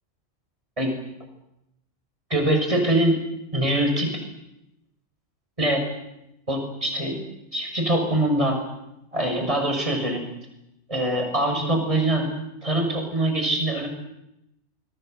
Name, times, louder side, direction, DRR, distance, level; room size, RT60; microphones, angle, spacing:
voice 1, 2.3-3.2 3.5-4.1 5.6-5.9 6.5-7.2 7.5-8.6 9.1-10.2 10.9-12.3 12.6-13.9, right 1 dB, 25° right, 3 dB, 6.6 m, -23 dB
28.5 x 21.5 x 8.1 m, 0.86 s
omnidirectional pair, 1.3 m